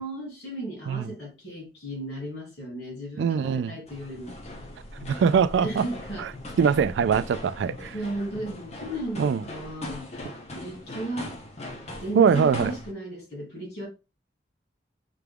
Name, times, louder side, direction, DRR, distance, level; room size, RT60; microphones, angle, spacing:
voice 1, 0.0-4.4 5.6-6.3 7.9-10.1 10.5-11.3 12.0-13.9, right 1 dB, 70° left, 2.7 m, -35 dB
voice 2, 3.2-3.8 5.0-5.8 6.2-6.3 6.6-7.9 9.2-9.4 12.1-12.7, right 6 dB, 85° right, 0.3 m, -22 dB
sound 1, 3.9-12.9, left 1 dB, 35° left, 0.7 m, -40 dB
5.9 x 3.4 x 2.2 m
head